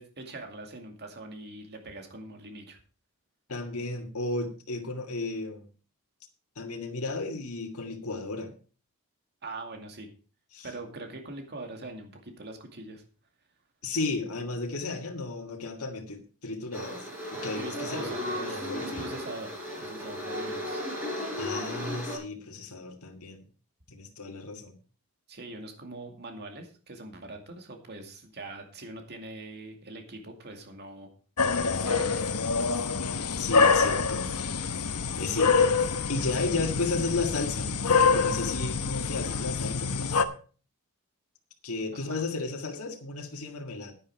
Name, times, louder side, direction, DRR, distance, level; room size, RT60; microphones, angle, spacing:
voice 1, 0.0-2.8 9.4-10.1 10.6-13.0 17.6-20.8 25.3-31.1 31.8-32.4 41.9-42.2, right 2 dB, 50° right, 4 dB, 2.3 m, -42 dB
voice 2, 3.5-5.7 6.5-8.5 10.5-10.7 13.8-19.1 21.4-23.4 23.9-24.7 33.4-34.3 35.2-35.8 36.1-39.9 41.6-43.9, left 3 dB, 70° left, 2 dB, 1.8 m, -34 dB
sound 1, 16.7-22.2, left 1 dB, 10° right, 4.8 m, -35 dB
sound 2, 31.4-40.2, left 5 dB, 90° left, 1.0 m, -26 dB
10.0 x 10.0 x 4.7 m, 0.39 s
head